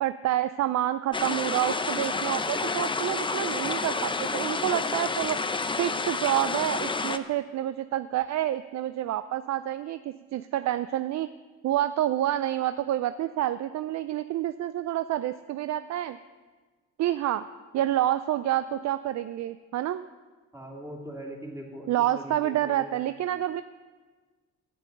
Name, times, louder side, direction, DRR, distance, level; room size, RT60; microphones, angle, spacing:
voice 1, 0.0-5.4 5.8-11.3 11.6-16.2 17.0-17.5 17.7-20.0 21.9-23.6, right 13 dB, 65° right, 12 dB, 0.4 m, -28 dB
sound 1, 1.1-7.2, left 4 dB, 15° left, 0.6 m, -29 dB
voice 2, 20.5-23.0, right 1 dB, 10° right, -1 dB, 2.5 m, -41 dB
11.5 x 9.3 x 6.6 m, 1.4 s
cardioid pair, 90°, 30 cm